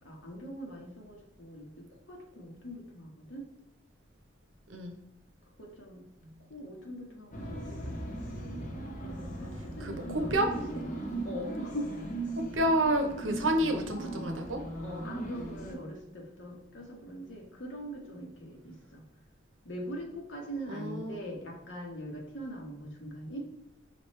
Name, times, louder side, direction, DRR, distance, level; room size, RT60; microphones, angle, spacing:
voice 1, 0.0-3.5 5.6-6.0 6.4-8.7 8.9-11.0 11.2-12.1 14.8-19.0 19.6-23.5, equal, 80° left, -1 dB, 1.3 m, -42 dB
sound 1, 7.3-15.7, right 2 dB, 45° left, 0.8 m, -38 dB
voice 2, 9.8-10.5 12.5-14.6 20.7-21.2, right 1 dB, 85° right, 5 dB, 0.8 m, -29 dB
5.1 x 3.1 x 3.2 m, 0.88 s
head